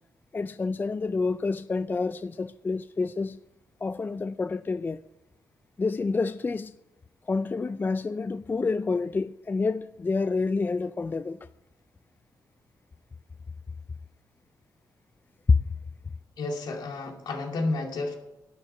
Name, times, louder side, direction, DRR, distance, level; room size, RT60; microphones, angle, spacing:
voice 1, 0.3-3.4 3.8-5.0 5.8-6.7 7.3-11.4 15.5-15.6, left 4 dB, 25° left, 0.4 m, -28 dB
voice 2, 16.4-18.1, left 2 dB, 75° left, 2.5 m, -31 dB
11.5 x 10.0 x 5.5 m
cardioid pair, 95°, 7 cm